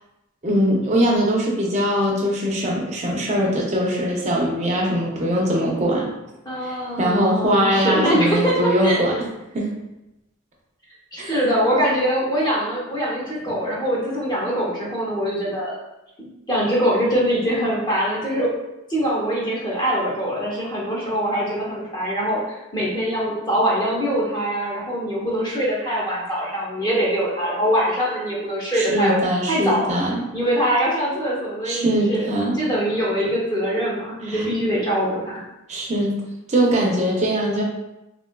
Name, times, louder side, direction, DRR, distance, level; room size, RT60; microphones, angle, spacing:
voice 1, 0.4-6.1 6.6-9.1 9.5-9.7 11.2-11.4 28.7-30.2 31.7-32.6 34.3-34.5 35.7-36.2 36.5-37.6, equal, 30° right, -2 dB, 0.5 m, -21 dB
voice 2, 6.5-9.0 11.1-15.8 16.2-18.5 18.9-29.2 29.5-30.0 30.3-35.4, equal, 20° left, -5 dB, 0.7 m, -23 dB
3.5 x 2.3 x 2.2 m, 0.95 s
head